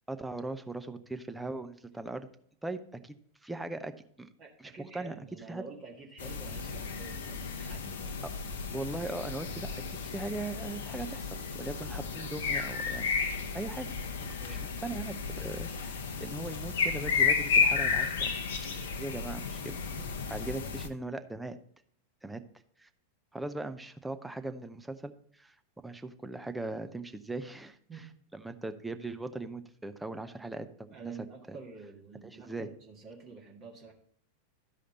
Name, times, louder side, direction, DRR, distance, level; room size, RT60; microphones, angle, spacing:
voice 1, 0.1-2.3 2.6-3.9 4.2-4.3 4.6-5.2 5.5-5.6 8.7-9.7 10.0-13.1 13.5-13.9 14.5-18.3 19.0-19.7 20.3-21.6 22.2-22.4 22.8-22.9 23.3-25.6 25.8-27.8 28.3-31.1 31.5-31.6 32.2-32.7, right 2 dB, 5° right, 8 dB, 0.6 m, -39 dB
voice 2, 4.4-8.2 14.4-14.7 19.6-20.3 27.9-28.1 30.9-33.9, right 4 dB, 30° right, -1 dB, 1.8 m, -48 dB
sound 1, 6.2-20.9, left 5 dB, 60° left, 0.8 m, -33 dB
13.0 x 5.0 x 4.0 m, 0.63 s
figure-of-eight pair, 90°, 0 cm